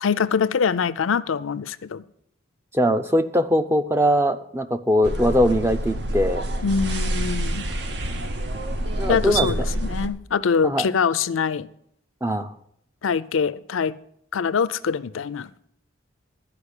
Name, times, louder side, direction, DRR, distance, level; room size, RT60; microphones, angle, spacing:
voice 1, 0.0-2.0 6.6-7.7 9.1-11.7 13.0-13.9 14.3-15.5, left 6 dB, 90° left, 17 dB, 0.5 m, -24 dB
voice 2, 2.7-6.5 9.0-9.5 10.6-10.9 12.2-12.5, equal, 10° right, 9 dB, 0.5 m, -21 dB
sound 1, 5.0-10.1, right 1 dB, 55° right, 0.8 m, -27 dB
12.0 x 5.1 x 8.2 m, 0.71 s
head